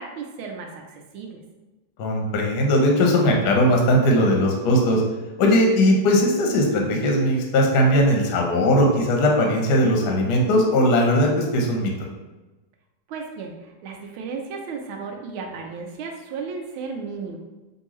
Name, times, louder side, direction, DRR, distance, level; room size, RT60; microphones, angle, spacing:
voice 1, 0.0-1.4 13.1-17.4, right 5 dB, 80° right, 2 dB, 1.5 m, -34 dB
voice 2, 2.0-5.0 5.4-11.9, equal, 60° left, 0 dB, 1.1 m, -19 dB
5.4 x 2.6 x 3.1 m, 1.1 s
omnidirectional pair, 2.3 m